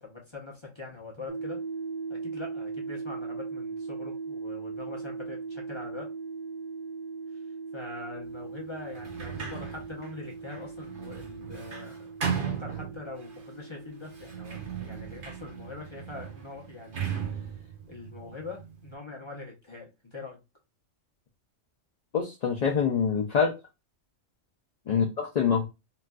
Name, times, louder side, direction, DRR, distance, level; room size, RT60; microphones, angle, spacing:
voice 1, 0.0-1.6 2.1-6.1 7.3-7.4 7.7-20.4 24.9-25.1, left 3 dB, 25° left, -1 dB, 0.7 m, -43 dB
sound 1, 1.3-16.8, right 4 dB, 20° right, 0.9 m, -39 dB
Sliding door, 8.9-13.4 14.1-18.9, right 7 dB, 50° right, 0.9 m, -37 dB
voice 2, 22.1-23.6 24.9-25.7, left 6 dB, 55° left, 1 dB, 0.4 m, -25 dB
4.1 x 2.4 x 2.2 m, 0.25 s
omnidirectional pair, 1.3 m